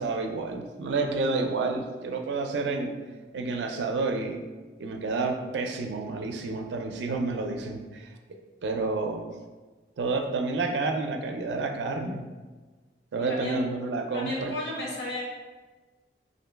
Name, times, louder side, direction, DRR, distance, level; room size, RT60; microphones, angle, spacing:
voice 1, 0.0-2.9 3.3-4.4 4.8-8.2 8.6-9.3 10.0-12.2 13.1-14.5, right 3 dB, 85° right, 4 dB, 0.4 m, -29 dB
voice 2, 13.2-13.6 14.1-15.2, left 1 dB, 80° left, -3 dB, 1.0 m, -34 dB
2.9 x 2.7 x 3.3 m, 1.3 s
head